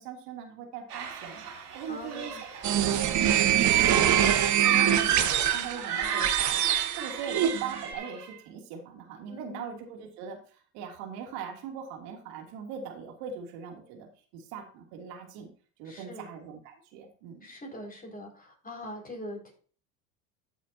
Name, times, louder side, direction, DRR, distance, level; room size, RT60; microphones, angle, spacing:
voice 1, 0.0-1.4 1.7-2.3 2.7-4.3 4.6-15.5 15.8-17.5, right 7 dB, 65° right, 1 dB, 3.1 m, -41 dB
sound 1, 0.9-8.3, right 7 dB, 85° right, 2.9 m, -35 dB
voice 2, 1.9-2.4 4.6-5.0 9.3-9.8 15.8-16.3 17.4-19.5, left 2 dB, 20° left, 0 dB, 5.8 m, -42 dB
sound 2, 2.6-7.9, right 11 dB, 40° right, 1.5 m, -24 dB
13.0 x 8.1 x 2.9 m, 0.41 s
hypercardioid pair, 80°, 45 cm